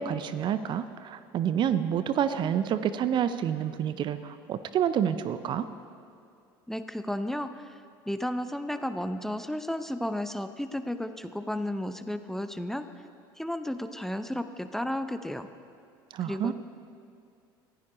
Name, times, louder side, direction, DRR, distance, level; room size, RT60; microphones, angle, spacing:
voice 1, 0.0-5.7 16.1-16.5, right 9 dB, 40° right, 13 dB, 0.7 m, -28 dB
voice 2, 6.7-12.9 13.4-15.5 16.2-16.5, left 1 dB, 5° left, 9 dB, 0.7 m, -33 dB
25.5 x 15.0 x 3.1 m, 2.4 s
figure-of-eight pair, 70°, 12 cm